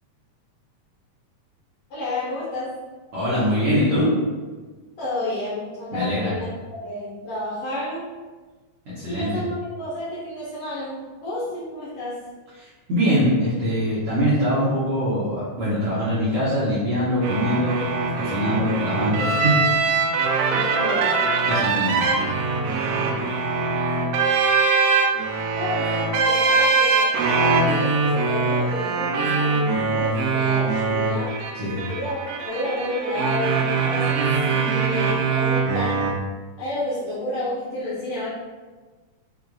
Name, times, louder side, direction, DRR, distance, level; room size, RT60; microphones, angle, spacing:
voice 1, 1.9-2.7 5.0-6.5 6.8-8.0 9.1-12.2 20.5-21.2 25.5-31.4 31.7-36.0 36.6-38.3, left 1 dB, 75° left, -9 dB, 1.6 m, -30 dB
voice 2, 3.1-4.1 5.9-6.3 8.9-9.4 12.6-17.8 18.2-19.6 20.5-20.7 21.4-22.2 31.5-31.8, equal, 70° right, -11 dB, 1.4 m, -23 dB
sound 1, 17.2-36.1, right 4 dB, 90° right, 2.2 m, -22 dB
6.0 x 2.4 x 2.3 m, 1.3 s
omnidirectional pair, 3.8 m